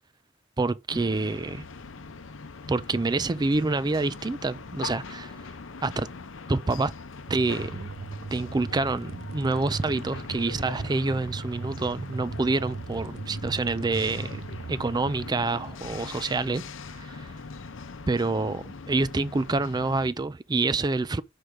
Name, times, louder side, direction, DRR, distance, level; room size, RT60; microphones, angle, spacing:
voice 1, 0.6-1.6 2.7-5.3 5.8-6.1 6.5-6.9 7.3-7.9 8.3-14.4 14.7-16.6 17.0-17.3 18.1-21.2, right 3 dB, 20° right, 0.4 m, -27 dB
sound 1, 0.9-20.1, left 4 dB, 70° left, 0.7 m, -41 dB
sound 2, 7.3-15.3, right 4 dB, 90° right, 0.7 m, -38 dB
5.8 x 4.9 x 6.4 m
head